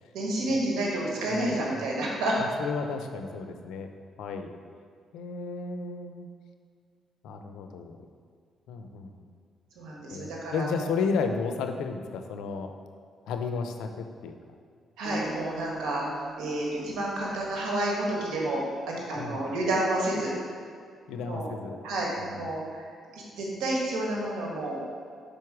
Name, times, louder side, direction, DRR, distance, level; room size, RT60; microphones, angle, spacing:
voice 1, 0.1-2.4 9.7-10.9 15.0-16.0 16.4-20.3 21.2-21.5 21.8-22.8 23.1-25.0, right 1 dB, 85° right, -3 dB, 1.5 m, -30 dB
voice 2, 2.4-3.9 4.2-4.5 5.1-6.3 7.2-8.0 8.7-9.3 10.1-12.7 13.3-14.3 19.2-19.4 21.1-21.8 22.2-22.4, left 5 dB, 90° left, 6 dB, 0.5 m, -33 dB
Acoustic guitar, 15.0-17.8, right 2 dB, 15° left, 1.4 m, -43 dB
5.1 x 4.6 x 4.8 m, 2.2 s
cardioid pair, 90°, 0 cm